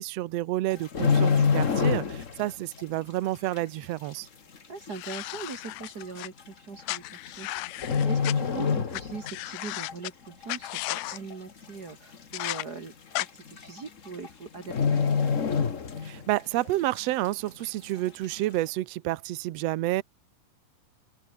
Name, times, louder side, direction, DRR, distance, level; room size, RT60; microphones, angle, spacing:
voice 1, 0.0-4.3 16.0-20.0, right 16 dB, 80° right, 1.4 m, -29 dB
sound 1, 0.7-2.5 2.7-3.0 3.6-3.7 4.5-4.6 4.9-5.0 5.8-6.0 7.1-7.5 7.8-9.4 9.7-9.9 10.4-11.0 11.3-11.4 11.6-11.7 12.1-12.2 13.2-13.3 13.6-13.9 14.1-14.3 14.6-16.3 16.7-16.8, left 6 dB, 70° left, 0.7 m, -25 dB
voice 2, 4.7-15.4, right 4 dB, 40° right, 1.6 m, -41 dB
sound 2, 4.9-6.3 6.9-8.3 8.9-9.0 9.3-10.1 10.5-11.2 12.3-12.6 13.1-13.3, left 20 dB, 85° left, 2.3 m, -34 dB
open air
omnidirectional pair, 4.0 m